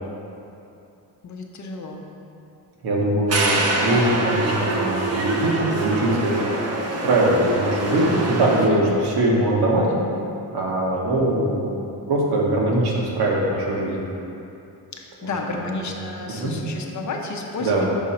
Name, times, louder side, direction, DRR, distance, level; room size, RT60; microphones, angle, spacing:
voice 1, 1.2-2.0 8.7-9.0 14.9-17.9, left 3 dB, 45° left, 1 dB, 0.6 m, -31 dB
voice 2, 2.8-6.3 7.0-9.9 10.5-14.0 15.5-15.7 16.3-16.5 17.6-17.9, right 1 dB, 70° right, -3 dB, 1.3 m, -22 dB
sound 1, 3.3-8.7, right 2 dB, 40° right, 0.8 m, -25 dB
6.2 x 3.7 x 4.3 m, 2.7 s
cardioid pair, 105°, 41 cm